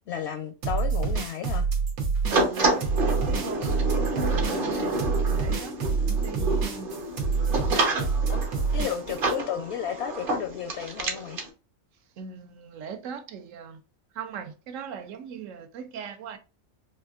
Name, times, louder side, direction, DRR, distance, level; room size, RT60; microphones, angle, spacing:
voice 1, 0.1-1.7 8.2-8.4 8.7-11.4, left 9 dB, 65° left, 0.7 m, -33 dB
sound 1, 0.6-9.3, right 5 dB, 90° right, 1.4 m, -27 dB
sound 2, 2.3-11.5, right 2 dB, 45° right, 0.9 m, -29 dB
voice 2, 2.3-6.9 12.2-13.8 14.1-16.4, right 7 dB, 75° right, 0.9 m, -40 dB
4.3 x 2.4 x 2.3 m
omnidirectional pair, 1.4 m